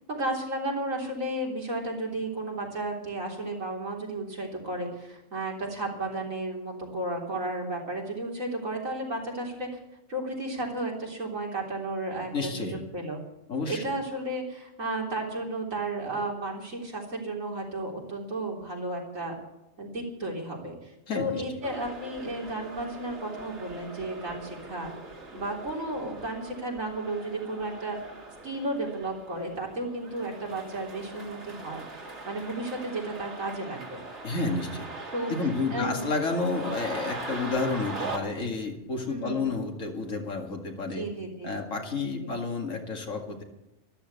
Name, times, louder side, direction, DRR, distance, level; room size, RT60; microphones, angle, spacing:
voice 1, 0.1-9.7 10.1-13.2 13.7-19.3 19.8-24.9 25.3-28.0 28.4-34.0 35.1-35.3 35.7-36.1 39.1-39.5 41.0-41.6 42.2-42.4, right 2 dB, 85° right, -1 dB, 4.0 m, -33 dB
voice 2, 12.3-12.8 13.5-13.8 21.1-21.4 34.2-34.9 35.3-41.0 41.4-43.4, left 3 dB, 80° left, 2 dB, 2.6 m, -30 dB
sound 1, 21.6-38.2, right 2 dB, 60° right, 2.5 m, -41 dB
13.0 x 12.5 x 8.2 m, 0.88 s
omnidirectional pair, 1.3 m